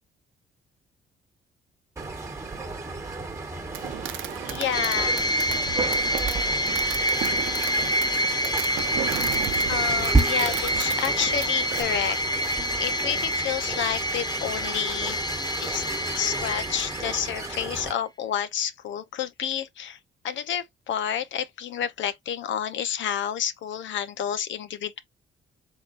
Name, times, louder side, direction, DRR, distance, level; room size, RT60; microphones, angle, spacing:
sound 1, 2.0-17.9, right 3 dB, 15° right, 1.4 m, -32 dB
Fireworks, 3.7-11.8, right 11 dB, 80° right, 0.7 m, -35 dB
voice 1, 4.4-5.3 9.7-12.2 12.8-15.2 15.6-15.9 16.1-20.0 20.2-25.0, left 9 dB, 70° left, 0.8 m, -29 dB
sound 2, 4.7-17.6, equal, 20° left, 0.6 m, -27 dB
4.5 x 3.8 x 2.5 m
cardioid pair, 90°, 20 cm